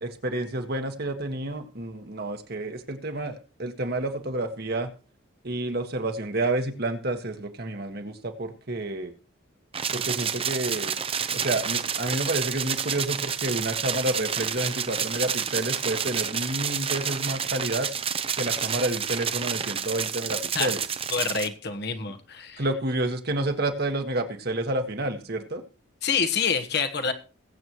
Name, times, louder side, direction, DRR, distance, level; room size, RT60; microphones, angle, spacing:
voice 1, 0.0-4.9 5.4-9.1 9.9-11.0 11.3-17.9 18.4-20.8 22.6-25.6, right 2 dB, 50° right, 6 dB, 1.6 m, -29 dB
sound 1, 9.7-21.5, right 7 dB, 30° right, 0.8 m, -29 dB
voice 2, 21.1-22.6 26.0-27.1, left 5 dB, 55° left, 6 dB, 1.3 m, -27 dB
21.0 x 8.1 x 3.1 m, 0.35 s
head